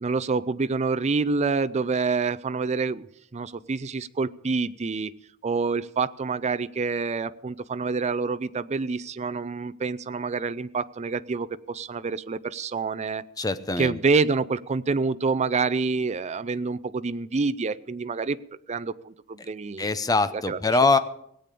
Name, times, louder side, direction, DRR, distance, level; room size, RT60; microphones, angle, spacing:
voice 1, 0.0-3.1 3.3-5.1 5.4-13.2 13.8-18.4 18.7-19.9 20.3-21.0, right 4 dB, 30° right, 13 dB, 0.5 m, -27 dB
voice 2, 13.4-14.0 19.8-21.0, left 3 dB, 20° left, 12 dB, 0.7 m, -23 dB
18.0 x 8.4 x 6.7 m, 0.74 s
head